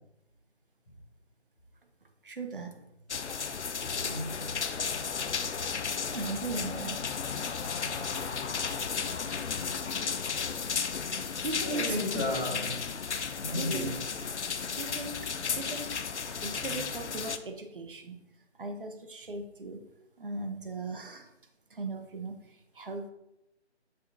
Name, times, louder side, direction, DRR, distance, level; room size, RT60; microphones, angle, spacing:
voice 1, 2.2-2.8 6.0-7.0 7.8-8.3 11.4-12.3 13.6-13.9 14.7-15.2 15.5-18.2 18.6-19.8 20.2-21.3 21.7-22.4 22.7-23.1, right 3 dB, 50° right, 5 dB, 0.8 m, -38 dB
sound 1, 3.1-17.4, left 6 dB, 80° left, 0.5 m, -34 dB
voice 2, 3.9-4.5 11.6-12.9 13.4-14.2, left 1 dB, 15° left, -12 dB, 1.6 m, -33 dB
6.6 x 5.4 x 2.6 m, 0.85 s
figure-of-eight pair, 160°, 34 cm